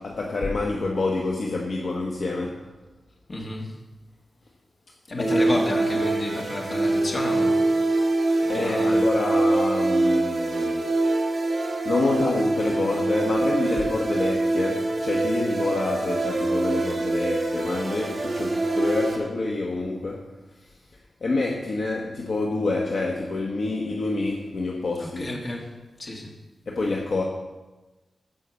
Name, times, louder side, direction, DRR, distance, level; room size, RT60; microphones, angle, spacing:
voice 1, 0.0-2.7 5.2-5.6 8.5-10.9 11.8-20.8 21.2-25.3 26.7-27.2, left 3 dB, 55° left, -1 dB, 1.1 m, -27 dB
voice 2, 3.3-3.7 5.1-7.6 8.5-9.0 25.0-25.7 26.0-26.3, left 1 dB, 35° left, -1 dB, 2.1 m, -31 dB
sound 1, 5.2-19.2, right 2 dB, 35° right, 1.5 m, -24 dB
15.0 x 5.5 x 6.3 m, 1.1 s
wide cardioid pair, 175°, 0 cm